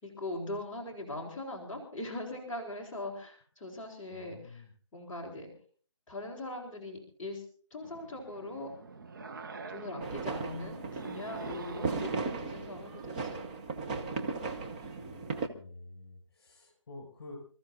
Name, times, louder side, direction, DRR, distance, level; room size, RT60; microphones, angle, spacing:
voice 1, 0.0-4.6 4.9-5.5 6.1-7.4 7.7-8.7 9.7-13.3, left 2 dB, 5° left, -10 dB, 3.0 m, -41 dB
voice 2, 4.1-4.7 15.0-17.4, left 3 dB, 45° left, 3 dB, 7.4 m, -49 dB
sound 1, 7.8-13.5, right 4 dB, 40° right, 1.0 m, -46 dB
sound 2, 10.0-15.5, right 4 dB, 15° right, 0.8 m, -36 dB
28.0 x 14.5 x 2.7 m, 0.43 s
figure-of-eight pair, 160°, 17 cm